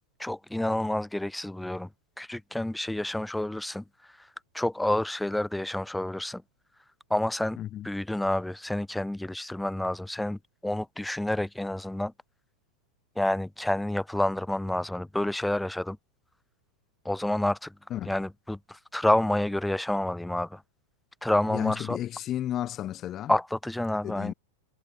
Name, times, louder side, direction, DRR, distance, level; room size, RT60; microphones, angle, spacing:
voice 1, 0.2-1.9 2.2-3.8 4.2-4.3 4.5-6.4 7.1-7.6 7.8-12.1 13.2-16.0 17.1-17.7 18.1-20.6 21.2-22.0 23.3-24.3, left 1 dB, 5° left, 3.6 m, -29 dB
voice 2, 7.6-7.9 17.9-18.1 21.5-23.3 24.0-24.3, left 12 dB, 30° left, 4.9 m, -33 dB
figure-of-eight pair, 90°, 0 cm